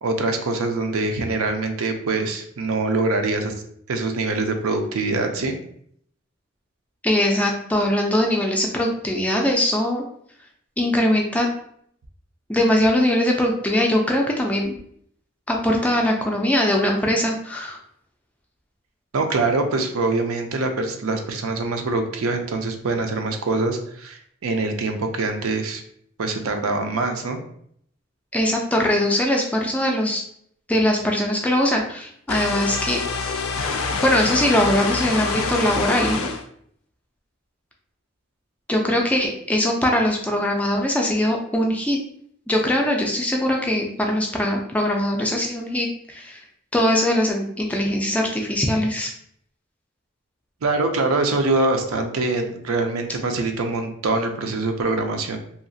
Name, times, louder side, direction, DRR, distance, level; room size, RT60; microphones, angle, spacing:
voice 1, 0.0-3.5 3.9-5.5 19.1-25.8 26.2-27.4 50.6-55.4, right 3 dB, 90° right, 5 dB, 0.5 m, -24 dB
voice 2, 7.0-10.0 10.8-11.5 12.5-14.7 15.5-17.8 28.3-30.2 30.7-33.0 34.0-36.3 38.7-42.0 42.5-46.4 46.7-49.1, left 1 dB, 5° left, 0 dB, 0.3 m, -21 dB
sound 1, 32.3-36.4, left 4 dB, 90° left, 0.4 m, -26 dB
2.8 x 2.4 x 2.6 m, 0.66 s
head